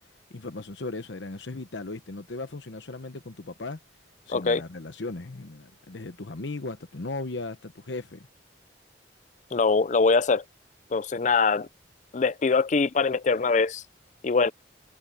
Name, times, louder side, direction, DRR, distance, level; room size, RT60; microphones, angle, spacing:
voice 1, 0.3-3.8 4.3-8.3, left 2 dB, 80° left, 1.0 m, -37 dB
voice 2, 4.3-4.6 9.5-10.4 10.9-11.7 12.1-13.8 14.2-14.5, left 4 dB, 40° left, 0.5 m, -23 dB
head